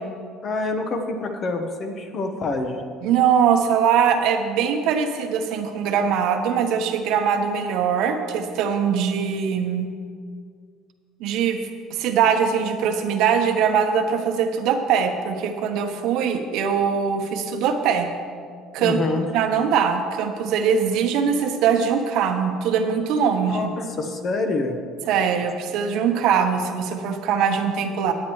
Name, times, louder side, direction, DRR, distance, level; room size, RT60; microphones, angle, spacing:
voice 1, 0.4-2.8 18.8-19.2 23.4-24.8, left 3 dB, 35° left, 5 dB, 1.1 m, -26 dB
voice 2, 3.0-9.9 11.2-11.6 11.9-18.1 18.7-19.0 19.3-23.7 25.1-28.1, right 7 dB, 65° right, 6 dB, 1.0 m, -22 dB
16.5 x 9.4 x 3.1 m, 2.1 s
cardioid pair, 145°, 0 cm